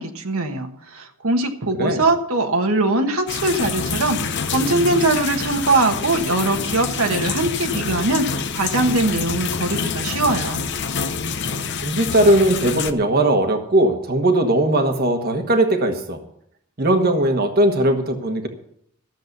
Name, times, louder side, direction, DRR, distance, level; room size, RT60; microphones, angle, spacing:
voice 1, 0.0-10.6, right 2 dB, 75° right, 4 dB, 1.4 m, -21 dB
sound 1, 3.3-12.9, left 5 dB, 50° left, 0.8 m, -26 dB
voice 2, 11.8-16.2 16.8-18.5, right 1 dB, 45° right, 5 dB, 1.3 m, -18 dB
13.5 x 7.6 x 6.6 m, 0.69 s
head